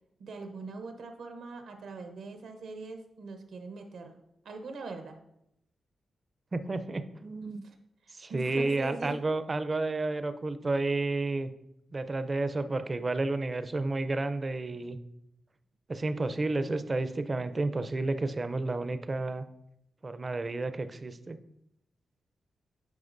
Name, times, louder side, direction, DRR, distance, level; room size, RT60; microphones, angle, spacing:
voice 1, 0.2-4.2 4.4-5.2 7.4-7.7 8.0-9.2, right 3 dB, 80° right, 5 dB, 0.9 m, -42 dB
voice 2, 6.5-7.6 8.1-11.5 11.9-15.0 15.9-19.5 20.0-21.4, right 2 dB, 35° right, 11 dB, 0.5 m, -31 dB
9.4 x 4.9 x 2.6 m, 0.80 s
cardioid pair, 80°, 0 cm